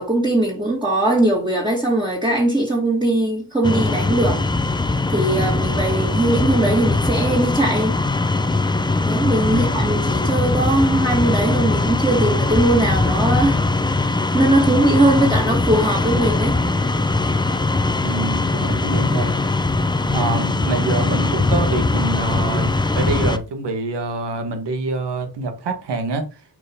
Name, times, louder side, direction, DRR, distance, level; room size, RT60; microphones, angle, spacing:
voice 1, 0.0-4.4 5.1-8.0 9.1-13.6 13.9-16.6 18.5-18.7, right 1 dB, 10° right, 2.1 m, -20 dB
sound 1, 3.6-23.4, left 2 dB, 10° left, 0.7 m, -20 dB
voice 2, 9.5-10.0 15.1-15.3 18.0-19.4 20.0-26.3, right 2 dB, 85° right, 1.5 m, -26 dB
6.1 x 4.8 x 3.6 m
cardioid pair, 55°, 40 cm